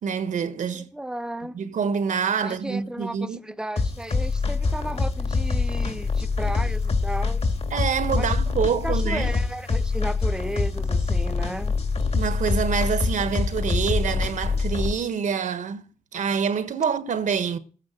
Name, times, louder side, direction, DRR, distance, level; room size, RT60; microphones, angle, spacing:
voice 1, 0.0-0.9 1.5-3.4 7.7-9.3 12.1-15.8 16.1-17.6, right 6 dB, 70° right, 1.4 m, -26 dB
voice 2, 0.7-1.6 2.4-7.5 8.1-8.3 8.8-11.8, right 1 dB, 5° right, 0.9 m, -34 dB
sound 1, 3.8-14.9, left 4 dB, 50° left, 2.5 m, -25 dB
14.0 x 9.6 x 6.4 m
cardioid pair, 55°, 13 cm